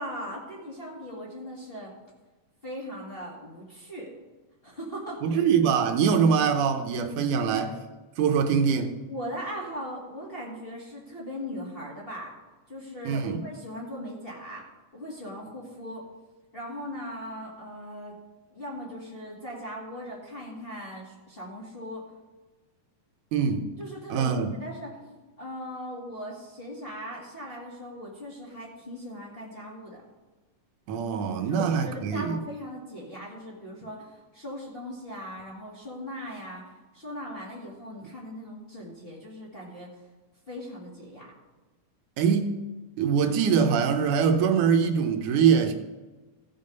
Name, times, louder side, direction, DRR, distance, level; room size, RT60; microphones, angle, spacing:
voice 1, 0.0-1.9 2.6-4.1 4.6-5.4 9.1-12.3 12.7-14.6 14.9-16.0 16.5-18.1 18.5-22.1 23.8-30.0 31.4-39.9 40.5-41.3, equal, 20° left, 2.0 m, -39 dB
voice 2, 5.2-7.8 8.2-9.0 13.1-13.4 23.3-23.7 24.1-24.5 30.9-32.4 42.2-42.6 43.0-45.7, right 6 dB, 80° right, 2.2 m, -23 dB
16.0 x 5.6 x 5.2 m
omnidirectional pair, 3.6 m